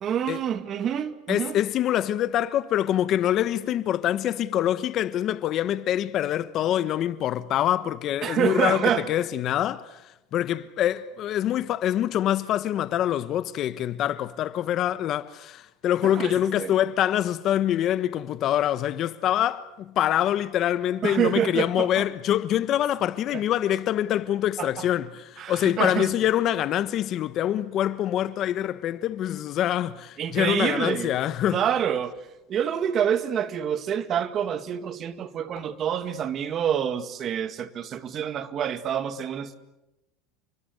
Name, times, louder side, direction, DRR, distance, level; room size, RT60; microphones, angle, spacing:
voice 1, 0.0-1.6 8.2-9.1 16.0-16.7 21.0-22.0 23.3-23.4 24.6-24.9 25.4-26.1 30.2-31.1 31.5-32.2 32.5-39.6, right 9 dB, 40° right, 2.0 m, -27 dB
voice 2, 1.3-10.0 10.3-31.6, left 11 dB, 45° left, 1.2 m, -25 dB
29.0 x 24.0 x 8.1 m
supercardioid pair, 125°, 0 cm